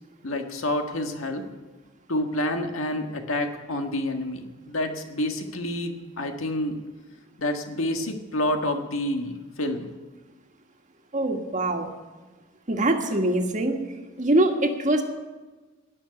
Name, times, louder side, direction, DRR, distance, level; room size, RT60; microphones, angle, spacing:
voice 1, 0.2-1.4 2.1-6.8 7.4-9.9, left 1 dB, 90° left, 5 dB, 1.6 m, -28 dB
voice 2, 11.1-11.9 12.7-13.8 14.2-15.0, right 1 dB, 40° right, 4 dB, 1.6 m, -23 dB
17.5 x 6.5 x 9.8 m, 1.3 s
head